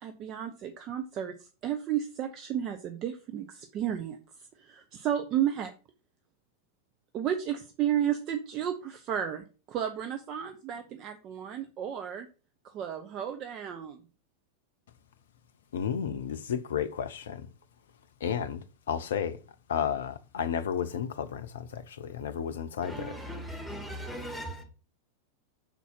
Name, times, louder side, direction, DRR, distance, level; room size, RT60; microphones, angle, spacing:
voice 1, 0.0-4.2 4.6-5.7 7.1-12.3 12.6-14.0, right 10 dB, 35° right, 0.7 m, -33 dB
voice 2, 15.7-17.4 18.2-19.4 19.7-23.1, left 8 dB, 60° left, 0.6 m, -32 dB
voice 3, 22.8-24.6, equal, ahead, 2.3 m, -38 dB
5.9 x 4.2 x 5.8 m
figure-of-eight pair, 90°, 0 cm